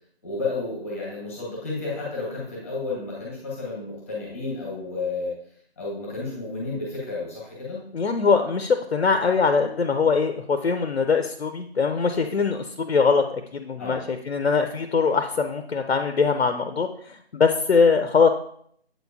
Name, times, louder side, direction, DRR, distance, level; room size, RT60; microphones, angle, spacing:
voice 1, 0.2-5.4 5.8-7.8 13.8-14.0, left 3 dB, 15° left, -4 dB, 1.0 m, -31 dB
voice 2, 7.9-18.3, left 5 dB, 80° left, 7 dB, 0.6 m, -22 dB
7.7 x 4.5 x 2.7 m, 0.64 s
figure-of-eight pair, 160°, 32 cm